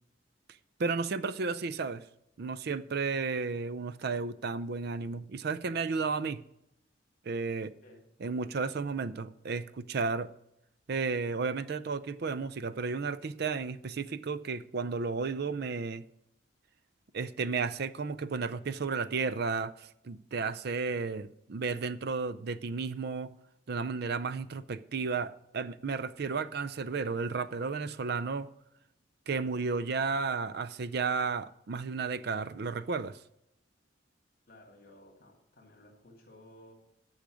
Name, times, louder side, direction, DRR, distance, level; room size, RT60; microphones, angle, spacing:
voice 1, 0.8-2.0 2.4-6.4 7.3-7.7 8.2-10.3 10.9-16.0 17.1-23.3 23.7-28.5 29.3-33.2, right 4 dB, 55° right, 0.5 m, -33 dB
voice 2, 34.5-36.7, left 1 dB, 50° left, 2.7 m, -56 dB
10.5 x 6.4 x 6.2 m
head